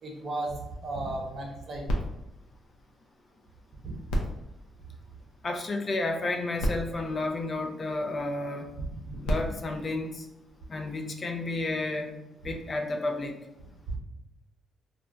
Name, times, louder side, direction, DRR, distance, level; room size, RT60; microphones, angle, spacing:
voice 1, 0.0-1.9 3.8-4.0 8.8-9.2 13.9-14.0, right 2 dB, 50° right, 0 dB, 0.9 m, -35 dB
sound 1, 1.9-3.5 4.0-5.6 6.3-6.4 6.6-8.2 9.0-10.8 11.5-11.6, equal, 90° left, 0.5 m, -35 dB
voice 2, 5.4-8.7 9.2-10.3 10.7-12.2 12.4-13.4, left 2 dB, 40° left, 3 dB, 0.4 m, -31 dB
2.4 x 2.1 x 3.9 m, 0.93 s
cardioid pair, 90°, 0 cm